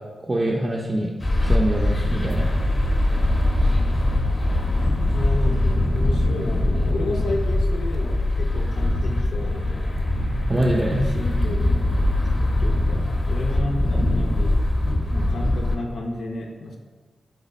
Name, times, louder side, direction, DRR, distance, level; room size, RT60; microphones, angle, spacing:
voice 1, 0.2-1.1 1.4-2.5 10.5-11.1, right 1 dB, 25° right, -3 dB, 0.4 m, -24 dB
sound 1, 1.2-15.8, left 1 dB, 35° left, 0.6 m, -22 dB
voice 2, 5.1-10.0 11.0-11.7 12.4-14.7 15.1-16.8, left 2 dB, 80° left, 1 dB, 0.4 m, -32 dB
4.0 x 2.2 x 4.0 m, 1.4 s
cardioid pair, 55°, 0 cm